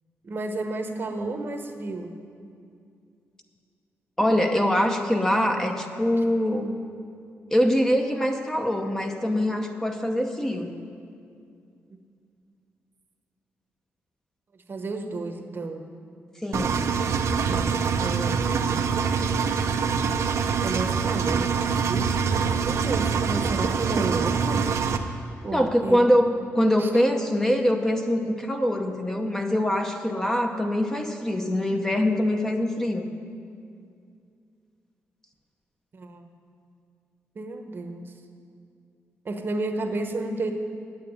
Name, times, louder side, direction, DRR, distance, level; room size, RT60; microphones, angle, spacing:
voice 1, 0.2-2.1 11.9-12.0 14.7-15.8 17.5-18.8 20.6-24.6 25.4-26.0 26.8-26.9 35.9-36.2 37.3-38.1 39.2-40.5, right 2 dB, 45° right, 5 dB, 1.0 m, -32 dB
voice 2, 4.2-6.8 7.5-10.7 16.4-16.9 25.5-33.1, equal, 10° left, 4 dB, 0.8 m, -23 dB
Engine, 16.5-25.0, right 6 dB, 70° right, 0.7 m, -25 dB
8.9 x 8.1 x 9.4 m, 2.4 s
cardioid pair, 110°, 5 cm